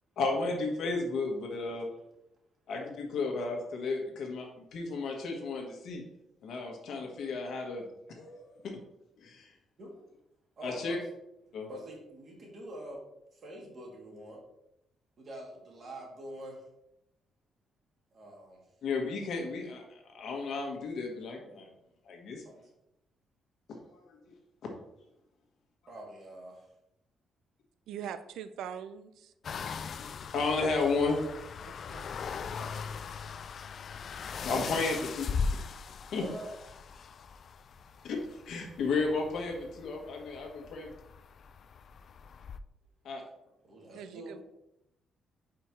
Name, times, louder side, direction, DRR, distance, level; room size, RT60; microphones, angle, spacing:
voice 1, 0.2-1.9 2.7-6.0 6.4-8.8 9.2-9.5 10.6-11.0 11.5-11.7 18.8-21.7 22.0-22.4 23.9-24.3 30.0-31.2 34.4-35.6 36.1-36.2 38.0-38.2 38.4-40.9 43.0-43.2, left 3 dB, 70° left, 1.4 m, -33 dB
voice 2, 10.6-11.0 11.5-13.0 13.3-14.4 15.2-16.7 18.1-18.8 22.4-22.7 25.9-26.7 32.5-33.3 36.1-36.5 43.6-44.4, right 1 dB, 50° right, 2.2 m, -46 dB
voice 3, 27.9-29.3 31.7-32.1 43.9-44.4, right 8 dB, 80° right, 0.3 m, -42 dB
sound 1, 29.4-42.6, left 5 dB, 55° left, 0.3 m, -40 dB
5.0 x 4.6 x 4.5 m
cardioid pair, 90°, 0 cm